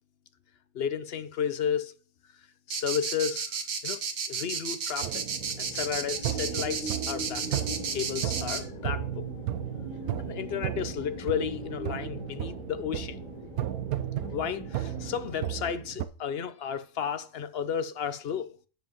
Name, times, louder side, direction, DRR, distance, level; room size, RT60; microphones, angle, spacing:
voice 1, 0.7-1.9 2.7-3.6 3.8-4.0 4.3-5.2 5.6-7.6 7.9-9.3 10.2-13.2 14.3-18.6, left 8 dB, 55° left, 0.7 m, -33 dB
sound 1, 2.7-8.6, right 6 dB, 55° right, 1.3 m, -32 dB
sound 2, 5.0-15.7, equal, 30° left, 3.8 m, -41 dB
sound 3, 5.0-16.1, right 12 dB, 80° right, 1.1 m, -35 dB
10.0 x 7.6 x 3.0 m
omnidirectional pair, 1.5 m